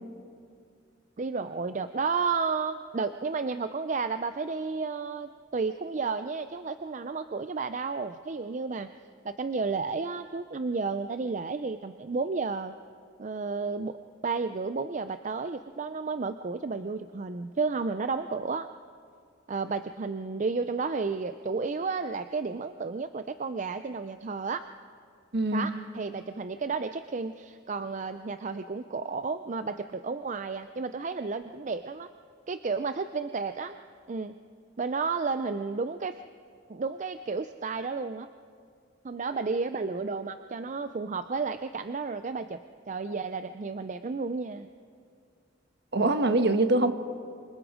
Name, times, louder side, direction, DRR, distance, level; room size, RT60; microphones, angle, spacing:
voice 1, 1.2-8.9 9.2-12.7 13.2-14.0 14.2-18.7 19.5-24.6 25.5-32.1 32.5-33.7 34.1-34.4 34.8-36.2 36.7-38.3 39.0-42.6 42.9-44.7, right 4 dB, 40° right, 10 dB, 0.5 m, -32 dB
voice 2, 25.3-25.7 45.9-46.9, right 2 dB, 60° right, 8 dB, 1.3 m, -23 dB
26.0 x 25.5 x 5.0 m, 2.2 s
head